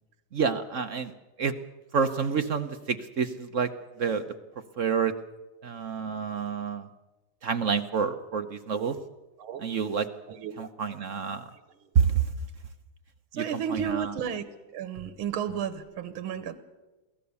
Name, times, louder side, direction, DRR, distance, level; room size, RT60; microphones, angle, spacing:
voice 1, 0.3-1.1 1.4-1.5 1.9-3.7 4.0-4.2 4.8-5.1 5.6-6.9 7.4-8.9 9.6-10.1 10.6-11.4 11.9-12.1 13.3-13.4 13.7-14.1, right 6 dB, 55° right, 8 dB, 0.9 m, -28 dB
voice 2, 10.3-10.7 11.2-11.3 11.8-11.9 13.3-16.6, right 8 dB, 85° right, 12 dB, 1.9 m, -33 dB
23.0 x 16.5 x 7.0 m, 1.2 s
omnidirectional pair, 2.2 m